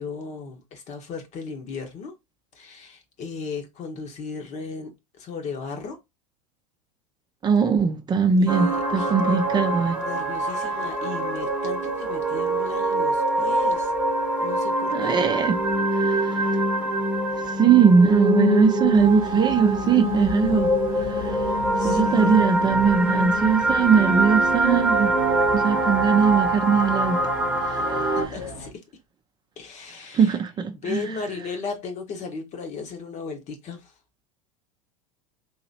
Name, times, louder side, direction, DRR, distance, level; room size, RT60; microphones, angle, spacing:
voice 1, 0.0-2.1 2.5-6.0 8.3-9.4 9.9-13.9 14.4-15.3 21.8-23.0 27.6-27.8 28.1-28.8 29.6-30.4 30.8-33.9, left 5 dB, 40° left, 1.2 m, -36 dB
voice 2, 7.4-10.0 14.9-15.6 15.9-16.6 17.5-20.7 20.9-21.4 21.8-25.1 25.5-27.2 27.6-28.2 30.1-31.0, right 6 dB, 25° right, 0.6 m, -21 dB
sound 1, 8.5-28.3, right 1 dB, 10° right, 1.1 m, -24 dB
sound 2, 18.9-28.7, left 1 dB, 80° left, 1.6 m, -38 dB
3.9 x 2.9 x 2.7 m
hypercardioid pair, 85°, 18 cm